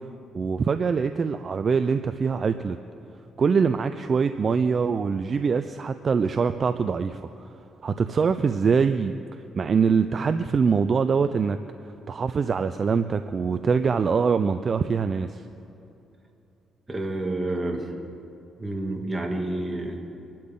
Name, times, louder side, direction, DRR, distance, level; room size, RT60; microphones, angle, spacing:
voice 1, 0.3-2.8 3.4-7.3 7.8-9.2 9.6-11.6 12.1-15.4, right 5 dB, 45° right, 10 dB, 0.5 m, -23 dB
voice 2, 16.9-17.9 18.6-20.1, right 2 dB, 20° right, 1 dB, 2.4 m, -29 dB
25.5 x 12.0 x 3.8 m, 2.8 s
cardioid pair, 90°, 0 cm